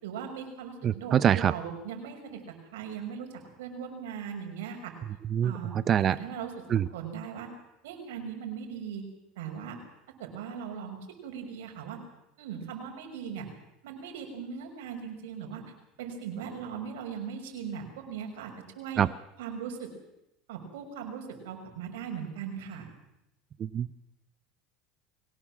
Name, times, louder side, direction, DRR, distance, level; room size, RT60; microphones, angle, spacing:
voice 1, 0.0-2.4 2.7-3.3 3.6-4.9 5.4-5.7 6.0-6.6 6.9-7.5 7.8-9.1 9.4-9.8 10.2-12.0 12.4-13.5 13.8-15.6 16.0-19.0 19.4-19.9 20.5-22.9, right 7 dB, 85° right, 3 dB, 5.9 m, -39 dB
voice 2, 0.8-1.5 5.3-6.2 6.7-6.9 19.0-19.1 23.6-24.0, right 9 dB, 40° right, 16 dB, 0.7 m, -25 dB
23.0 x 18.0 x 7.6 m, 0.86 s
supercardioid pair, 100°, 0 cm